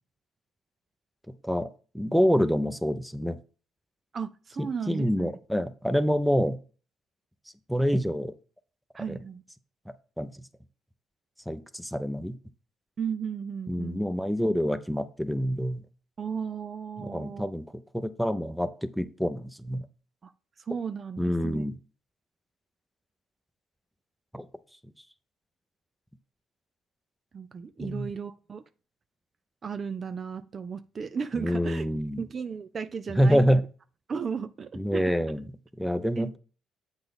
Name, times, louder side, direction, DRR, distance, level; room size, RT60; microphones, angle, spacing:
voice 1, 1.9-3.4 4.9-6.6 7.7-8.3 10.2-10.3 11.5-12.4 13.7-15.8 17.0-17.6 17.9-19.8 21.2-21.7 24.3-24.5 27.8-28.1 31.3-32.2 33.2-33.6 34.8-35.4 35.8-36.4, equal, ahead, 0.7 m, -26 dB
voice 2, 4.1-5.3 8.9-9.4 13.0-14.1 16.2-17.5 20.2-20.3 20.7-21.6 27.3-28.6 29.6-31.9 32.2-33.5 34.1-35.1 36.2-36.4, right 6 dB, 40° right, 0.4 m, -35 dB
8.0 x 4.1 x 5.2 m
cardioid pair, 90°, 0 cm